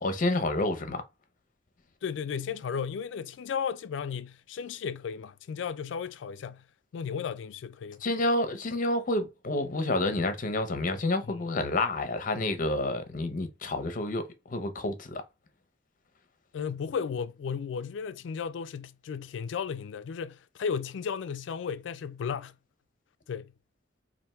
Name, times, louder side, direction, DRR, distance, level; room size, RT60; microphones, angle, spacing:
voice 1, 0.0-1.0 8.0-15.2, left 2 dB, 45° left, 0.7 m, -29 dB
voice 2, 2.0-6.6 6.9-8.0 11.2-11.4 16.5-22.5 23.3-23.5, left 6 dB, 75° left, 0.3 m, -34 dB
3.4 x 2.6 x 4.2 m
head